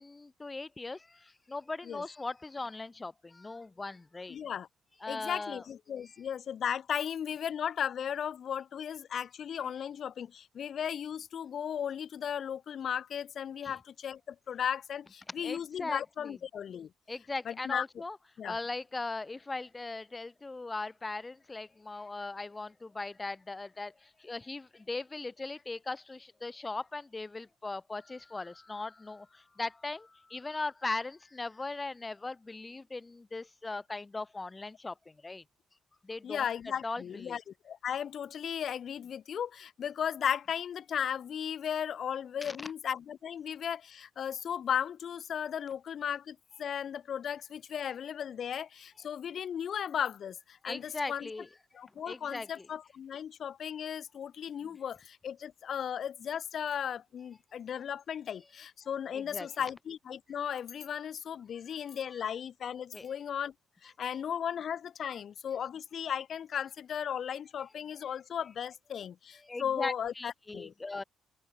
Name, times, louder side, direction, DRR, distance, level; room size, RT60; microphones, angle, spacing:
voice 1, 0.0-4.4 5.0-5.6 13.6-13.7 15.4-16.3 17.1-18.2 18.4-35.4 36.0-36.5 36.8-37.4 42.4-42.7 50.6-51.5 52.1-52.7 59.1-59.5 61.7-62.2 62.9-63.1 69.4-71.0, left 3 dB, 20° left, 1.3 m, -39 dB
voice 2, 4.3-4.7 5.1-16.9 17.5-17.9 18.4-18.6 36.2-51.3 51.7-63.5 63.8-70.7, left 8 dB, 60° left, 0.4 m, -36 dB
open air
cardioid pair, 90°, 0 cm